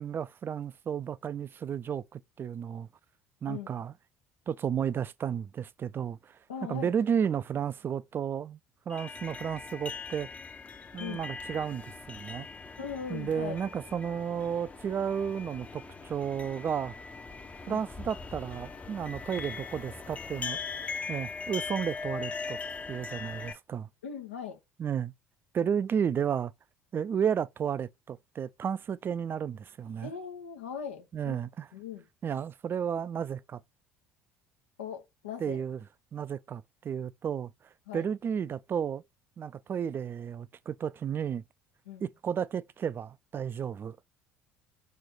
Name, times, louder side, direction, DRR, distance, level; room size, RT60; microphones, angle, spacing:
voice 1, 0.0-2.9 3.4-3.9 4.5-6.3 6.7-8.6 8.9-10.3 10.9-12.5 13.1-16.9 17.7-20.6 21.1-22.6 22.9-23.9 24.8-25.1 25.5-26.5 26.9-30.1 31.1-31.7 32.2-33.6 35.4-35.8 36.1-37.5 37.9-39.0 39.4-41.4 42.0-44.0, right 8 dB, 30° right, 0.3 m, -32 dB
voice 2, 6.5-6.9 11.0-11.2 12.8-13.6 17.7-17.8 24.0-24.6 30.0-31.4 31.7-32.0 34.8-35.6 37.9-38.1 41.9-42.1, left 7 dB, 80° left, 1.0 m, -39 dB
sound 1, 8.9-23.5, left 4 dB, 20° left, 0.7 m, -40 dB
4.1 x 3.1 x 4.0 m
figure-of-eight pair, 60°, 7 cm